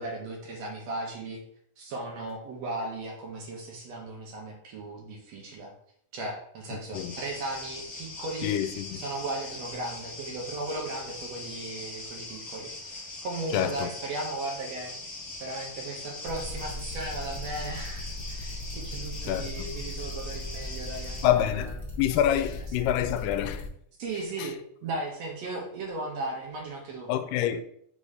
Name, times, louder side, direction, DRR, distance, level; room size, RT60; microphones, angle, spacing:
voice 1, 0.0-1.4 1.8-5.7 6.1-8.5 8.9-14.9 15.4-21.2 24.0-27.1, right 2 dB, 65° right, 1.9 m, -36 dB
sound 1, 6.9-21.3, left 2 dB, 45° left, 0.9 m, -41 dB
voice 2, 8.4-9.0 13.5-13.9 19.3-19.7 21.2-21.7 22.0-23.7 24.4-24.5 27.1-27.6, left 11 dB, 85° left, 2.1 m, -27 dB
sound 2, 16.2-23.7, left 1 dB, 20° left, 1.9 m, -38 dB
5.4 x 4.1 x 4.8 m
omnidirectional pair, 3.8 m